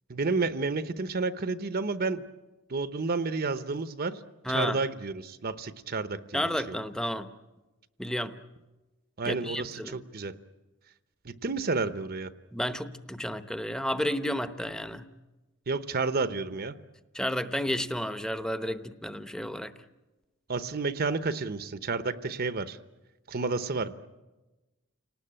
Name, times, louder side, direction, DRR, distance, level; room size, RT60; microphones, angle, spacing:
voice 1, 0.1-2.3 2.7-4.2 4.5-6.7 9.2-10.3 11.2-12.3 15.7-16.7 20.5-22.8 23.3-23.9, right 3 dB, 50° right, 12 dB, 0.9 m, -31 dB
voice 2, 4.4-4.8 6.3-7.3 8.0-8.4 9.2-10.0 12.5-15.1 17.1-19.7, equal, 5° left, 10 dB, 0.9 m, -31 dB
29.5 x 19.0 x 8.9 m, 1.2 s
head